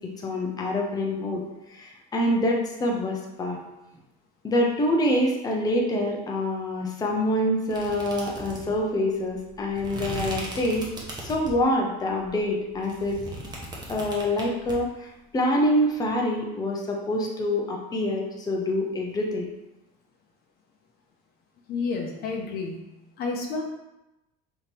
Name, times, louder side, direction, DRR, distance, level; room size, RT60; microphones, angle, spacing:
voice 1, 0.2-1.4 1.7-3.6 4.4-10.9 11.2-13.2 13.5-13.6 13.9-14.9 15.3-19.5, left 1 dB, 20° left, -1 dB, 0.7 m, -26 dB
sound 1, 7.7-11.7 12.2-14.7, right 1 dB, 20° right, 1.1 m, -38 dB
voice 2, 21.7-22.8 23.2-23.6, left 4 dB, 55° left, 2 dB, 0.8 m, -30 dB
3.5 x 3.0 x 4.4 m, 0.95 s
cardioid pair, 110°, 19 cm